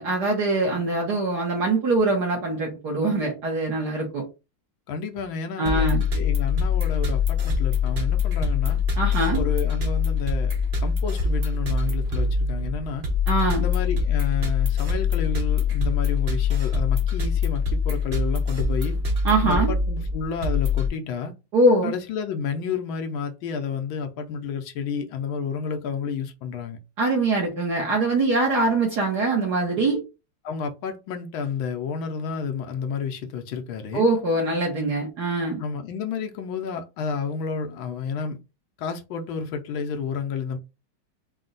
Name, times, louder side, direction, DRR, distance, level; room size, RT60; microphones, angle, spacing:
voice 1, 0.0-4.2 5.6-6.0 9.0-9.4 13.3-13.6 19.2-19.7 21.5-21.9 27.0-30.0 33.9-35.6, right 2 dB, 55° right, 1.5 m, -23 dB
voice 2, 4.9-8.8 9.3-10.5 10.8-13.1 13.5-19.0 19.4-21.3 21.8-26.8 30.4-34.1 35.6-38.4 38.8-40.6, left 6 dB, 75° left, 1.4 m, -31 dB
sound 1, 5.7-20.9, left 5 dB, 75° right, 0.4 m, -24 dB
4.2 x 2.3 x 3.8 m
omnidirectional pair, 2.3 m